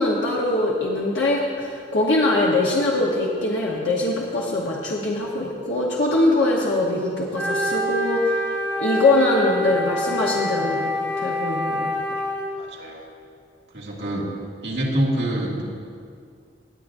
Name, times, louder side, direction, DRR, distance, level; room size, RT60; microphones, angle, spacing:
voice 1, 0.0-8.4 8.8-10.9 11.2-11.9, left 2 dB, 85° left, -3 dB, 1.1 m, -22 dB
Wind instrument woodwind instrument, 7.3-12.5, left 1 dB, 15° left, 1.3 m, -26 dB
voice 2, 12.6-13.0 13.7-14.3 14.6-15.6, right 1 dB, 65° right, -4 dB, 2.0 m, -25 dB
18.5 x 8.5 x 2.6 m, 2.2 s
head